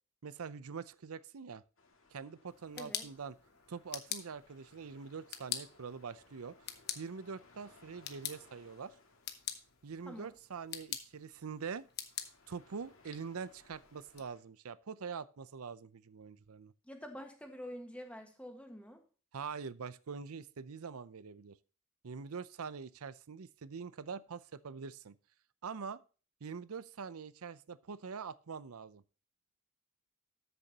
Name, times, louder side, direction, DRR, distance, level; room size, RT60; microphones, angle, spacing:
voice 1, 0.2-1.6 2.1-3.3 3.7-6.6 7.0-8.9 9.8-11.9 12.5-16.7 19.3-21.6 22.0-25.2 25.6-26.0 26.4-29.0, right 5 dB, 85° right, 0.6 m, -44 dB
sound 1, 1.8-14.4, left 3 dB, 65° left, 2.3 m, -65 dB
sound 2, 2.5-14.2, left 10 dB, 45° left, 1.1 m, -46 dB
voice 2, 2.7-3.1 10.0-10.3 16.8-19.0, equal, 5° left, 1.5 m, -47 dB
13.0 x 6.9 x 2.9 m
head